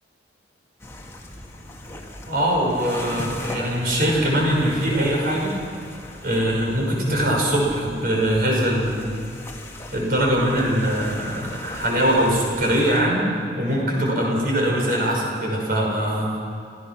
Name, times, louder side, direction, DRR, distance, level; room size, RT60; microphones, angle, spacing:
sound 1, 0.8-13.0, left 1 dB, 15° left, 1.8 m, -38 dB
voice 1, 2.2-5.6 6.2-9.2 9.9-16.4, equal, 50° right, -2 dB, 5.8 m, -22 dB
27.0 x 16.0 x 6.2 m, 2.5 s
head